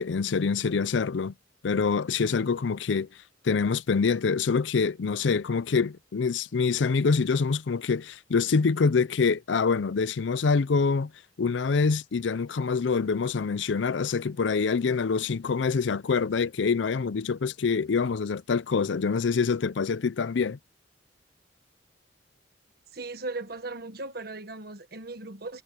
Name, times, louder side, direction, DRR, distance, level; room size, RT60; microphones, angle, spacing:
voice 1, 0.0-1.3 1.6-3.1 3.4-11.1 11.4-20.6, left 5 dB, 80° left, 0.5 m, -25 dB
voice 2, 22.9-25.6, right 3 dB, 55° right, 1.5 m, -37 dB
head